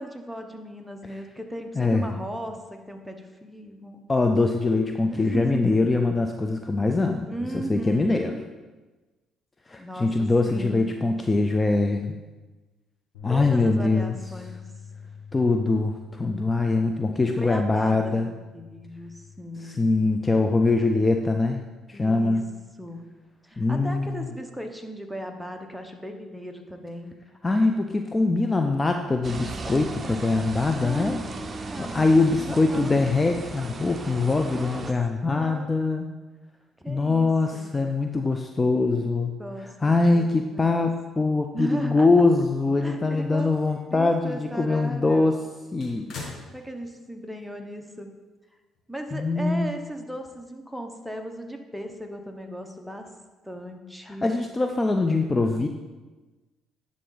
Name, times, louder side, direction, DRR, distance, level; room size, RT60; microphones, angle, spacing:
voice 1, 0.0-4.0 5.1-5.9 7.2-8.5 9.8-11.0 13.3-14.6 17.3-19.9 21.9-22.4 22.8-23.0 23.4-27.1 30.8-33.0 34.5-34.8 35.3-35.7 36.8-37.7 39.4-40.9 41.5-42.1 42.8-43.5 43.9-45.3 46.5-48.1 48.9-53.1 53.4-54.4, right 1 dB, ahead, 4 dB, 1.0 m, -37 dB
voice 2, 1.8-2.1 4.1-8.3 9.7-12.1 13.2-14.2 15.3-18.3 19.6-21.6 21.9-22.5 23.6-24.2 27.4-31.2 31.8-36.1 36.9-39.3 39.6-45.3 45.7-46.1 49.1-49.7 54.1-55.7, left 3 dB, 25° left, 5 dB, 0.4 m, -23 dB
sound 1, 13.1-19.4, left 6 dB, 90° left, 1.5 m, -43 dB
sound 2, 29.2-34.9, right 3 dB, 35° right, 0.6 m, -37 dB
sound 3, 42.8-43.9 44.4-44.5 45.0-47.1 47.4-47.5 48.7-48.8, left 3 dB, 60° left, 1.8 m, -44 dB
11.0 x 3.7 x 3.9 m, 1.2 s
supercardioid pair, 65°, 0 cm